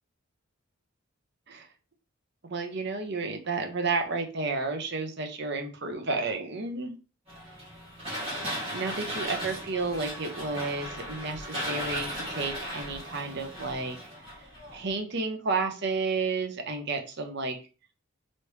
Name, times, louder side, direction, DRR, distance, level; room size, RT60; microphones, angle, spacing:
voice 1, 2.4-7.0 8.3-14.0 14.7-17.6, right 3 dB, 55° right, 5 dB, 0.8 m, -31 dB
sound 1, 7.3-14.9, equal, 30° right, 2.0 m, -37 dB
4.1 x 3.2 x 3.3 m, 0.33 s
head